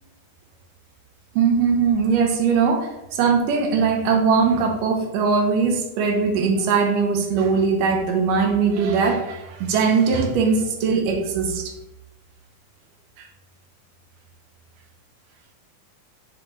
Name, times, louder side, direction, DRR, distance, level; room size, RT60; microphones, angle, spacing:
voice 1, 1.4-11.7, right 5 dB, 70° right, 3 dB, 2.5 m, -20 dB
7.9 x 4.4 x 4.2 m, 0.94 s
omnidirectional pair, 4.1 m